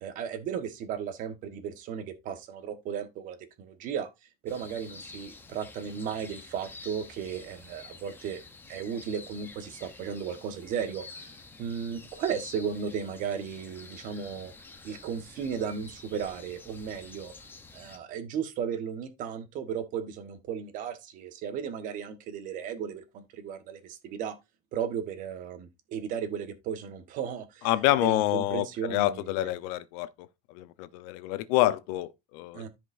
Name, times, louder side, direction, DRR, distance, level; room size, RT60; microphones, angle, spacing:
voice 1, 0.0-4.1 4.4-8.4 8.7-14.5 14.8-17.3 17.7-24.3 24.7-27.7 28.0-29.5 32.5-32.7, right 7 dB, 45° right, 1.4 m, -35 dB
sound 1, 4.5-18.0, left 3 dB, 10° left, 0.8 m, -49 dB
voice 2, 27.6-30.1 30.5-32.6, left 15 dB, 85° left, 0.8 m, -27 dB
13.5 x 5.1 x 2.6 m
cardioid pair, 170°, 19 cm